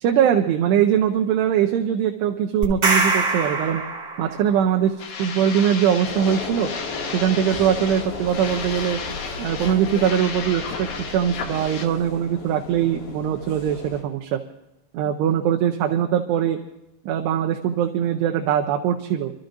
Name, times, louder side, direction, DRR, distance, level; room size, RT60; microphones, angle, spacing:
voice 1, 0.0-3.8 4.2-6.7 7.1-9.0 9.4-10.9 11.1-14.4 14.9-16.6 17.1-19.3, right 9 dB, 80° right, 3 dB, 2.8 m, -21 dB
sound 1, 2.6-4.6, right 3 dB, 50° right, 1.1 m, -23 dB
sound 2, 5.0-11.9, left 5 dB, 65° left, 2.9 m, -33 dB
sound 3, 6.0-14.0, left 3 dB, 80° left, 5.0 m, -35 dB
27.0 x 13.5 x 2.6 m, 0.87 s
omnidirectional pair, 4.9 m